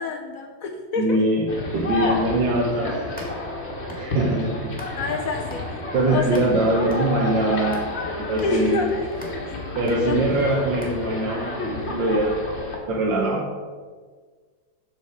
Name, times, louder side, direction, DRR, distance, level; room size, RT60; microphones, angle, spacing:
voice 1, 0.0-1.2 4.4-4.6 4.9-5.8 6.1-6.5 8.4-9.0 9.5-9.6 10.0-10.2, left 4 dB, 65° left, 3 dB, 0.9 m, -27 dB
voice 2, 1.0-1.5 1.7-2.9 4.0-4.7 5.9-7.8 8.1-8.8 9.8-12.4 12.9-13.4, right 1 dB, 70° right, -3 dB, 1.6 m, -22 dB
sound 1, 1.5-12.8, left 2 dB, 35° left, 1.5 m, -30 dB
sound 2, 2.8-5.2 5.5-11.4, left 1 dB, 5° left, 1.5 m, -42 dB
6.8 x 6.7 x 4.8 m, 1.5 s
omnidirectional pair, 2.1 m